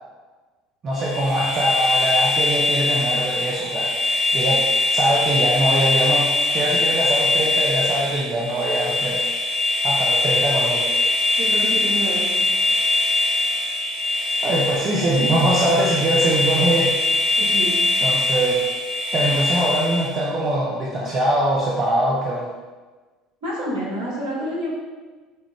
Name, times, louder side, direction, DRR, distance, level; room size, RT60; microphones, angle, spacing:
voice 1, 0.8-3.9 4.3-4.6 4.9-9.2 9.8-10.9 14.4-16.9 18.0-18.6 19.1-22.5, right 1 dB, 40° right, -5 dB, 0.7 m, -22 dB
sound 1, 1.0-20.2, left 2 dB, 65° left, 1.0 m, -22 dB
voice 2, 11.4-12.4 17.4-17.7 23.4-24.7, equal, 65° right, -7 dB, 1.4 m, -28 dB
5.4 x 2.4 x 3.1 m, 1.3 s
figure-of-eight pair, 65°, 0 cm